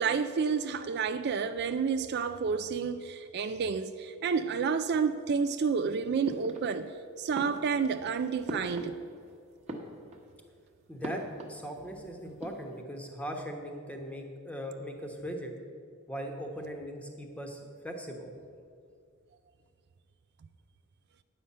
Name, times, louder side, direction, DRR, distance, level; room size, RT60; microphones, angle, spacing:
voice 1, 0.0-6.9 7.2-9.0, right 5 dB, 50° right, 0.3 m, -30 dB
sound 1, 6.2-7.0 7.3-9.3 9.6-10.4 11.0-12.0 12.3-12.8, right 1 dB, 30° right, 1.2 m, -41 dB
voice 2, 10.9-11.2 11.5-15.5 16.1-17.6 17.8-18.3, equal, 5° left, 1.1 m, -39 dB
9.8 x 5.6 x 8.5 m
head